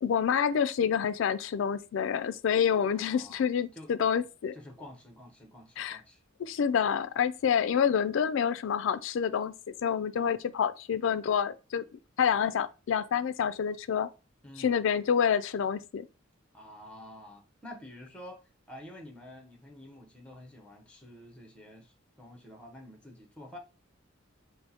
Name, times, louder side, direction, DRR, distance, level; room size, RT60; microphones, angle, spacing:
voice 1, 0.0-4.6 5.8-6.0 6.4-9.5 9.8-11.8 12.2-14.1 14.6-16.1, left 7 dB, 65° left, 0.3 m, -28 dB
voice 2, 2.8-3.5 3.7-3.9 4.5-6.2 10.1-10.4 14.4-14.8 16.5-18.4 18.7-23.6, left 1 dB, 5° left, 0.8 m, -49 dB
6.1 x 2.0 x 2.8 m
head